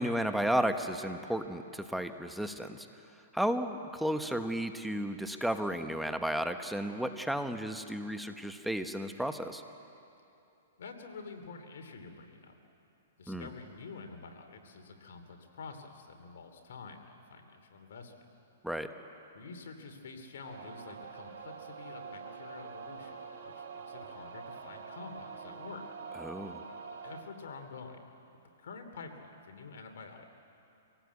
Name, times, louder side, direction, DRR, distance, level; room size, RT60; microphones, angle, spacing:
voice 1, 0.0-2.9 3.3-9.6 13.3-13.5 18.6-18.9 26.2-26.6, equal, ahead, 7 dB, 1.0 m, -33 dB
voice 2, 10.8-12.5 13.2-18.2 19.3-23.2 23.4-25.8 27.0-28.0 28.6-30.2, left 4 dB, 70° left, 5 dB, 3.0 m, -48 dB
sound 1, 20.4-27.2, right 5 dB, 65° right, 4.8 m, -45 dB
24.5 x 18.0 x 8.3 m, 2.8 s
hypercardioid pair, 140°, 0 cm